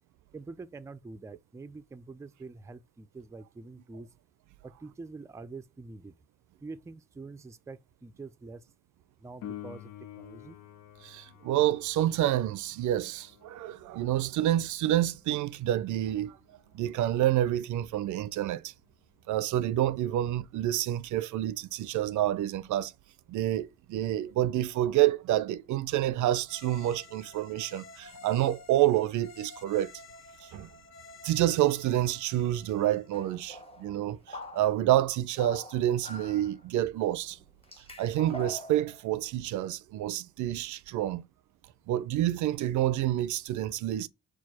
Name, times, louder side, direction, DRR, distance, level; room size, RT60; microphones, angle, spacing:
voice 1, 0.3-4.1 4.6-6.1 6.6-8.7 9.2-10.6, right 3 dB, 10° right, 0.3 m, -45 dB
Piano, 9.4-19.8 27.4-27.5, left 12 dB, 80° left, 0.6 m, -51 dB
voice 2, 11.0-16.4 16.7-18.7 19.3-22.9 23.3-29.9 30.4-30.7 31.2-37.4 37.8-41.3 41.9-44.1, right 13 dB, 75° right, 0.5 m, -28 dB
sound 1, 26.5-33.1, left 4 dB, 60° left, 1.0 m, -51 dB
sound 2, 33.1-34.9 35.3-36.6 37.2-37.3 37.6-39.1, equal, 20° left, 1.0 m, -44 dB
4.5 x 2.3 x 4.1 m
cardioid pair, 90°, 30 cm